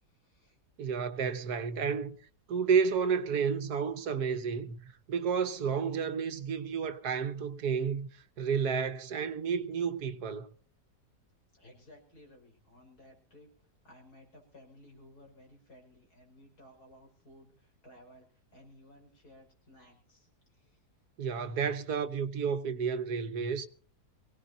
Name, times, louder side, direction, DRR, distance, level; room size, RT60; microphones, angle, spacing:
voice 1, 0.0-0.6 11.5-20.8, left 1 dB, 70° left, 6.0 m, -57 dB
voice 2, 0.8-2.2 2.5-4.8 5.1-10.5 21.2-23.7, right 6 dB, 75° right, 1.6 m, -31 dB
24.0 x 17.5 x 2.7 m
omnidirectional pair, 1.7 m